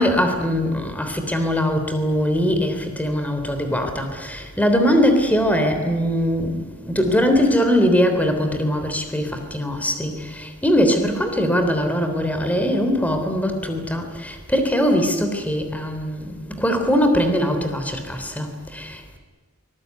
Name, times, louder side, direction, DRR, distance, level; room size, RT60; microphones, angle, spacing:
voice 1, 0.0-19.2, equal, 5° left, 6 dB, 3.5 m, -21 dB
24.5 x 20.5 x 9.5 m, 1.5 s
head